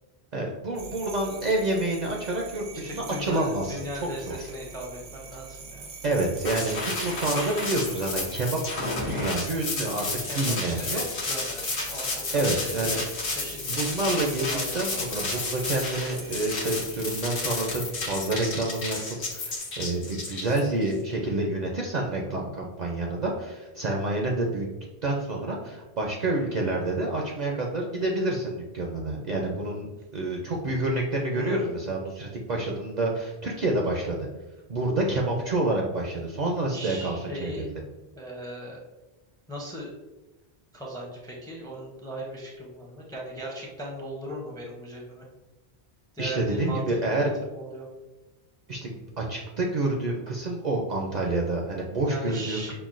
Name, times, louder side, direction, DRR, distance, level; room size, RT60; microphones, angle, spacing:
voice 1, 0.3-4.5 6.0-10.1 10.3-11.0 12.3-13.0 13.6-19.0 19.3-24.7 25.0-34.3 34.7-37.8 46.2-47.4 48.7-52.7, right 2 dB, 55° right, -1 dB, 0.5 m, -28 dB
sound 1, 0.7-19.6, right 4 dB, 75° right, 0.9 m, -45 dB
voice 2, 2.8-5.9 10.0-13.0 13.3-13.8 14.5-15.2 22.2-22.6 31.3-31.7 36.7-37.7 38.2-38.8 39.5-39.9 40.7-45.2 46.1-48.0 52.1-52.7, equal, 5° left, -1 dB, 0.4 m, -38 dB
sound 2, 6.4-20.9, left 3 dB, 85° left, 1.2 m, -32 dB
5.7 x 2.1 x 2.4 m, 1.1 s
omnidirectional pair, 1.1 m